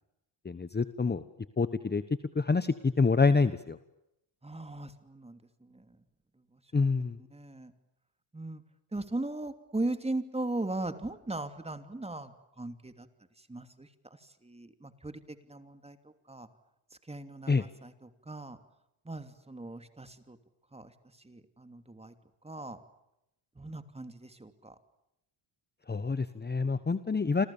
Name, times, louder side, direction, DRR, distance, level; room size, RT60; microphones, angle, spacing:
voice 1, 0.4-1.2 1.6-2.0 2.3-3.8 6.7-7.2 17.5-17.6 25.9-27.5, left 4 dB, 20° left, 13 dB, 1.2 m, -27 dB
voice 2, 4.4-6.0 6.5-6.6 7.3-7.7 8.3-8.6 8.9-13.1 13.4-16.5 17.0-18.6 19.0-20.4 20.7-22.1 22.4-22.8 23.5-24.8, right 2 dB, 10° right, 9 dB, 2.9 m, -39 dB
29.5 x 26.5 x 7.3 m, 0.86 s
cardioid pair, 105°, 49 cm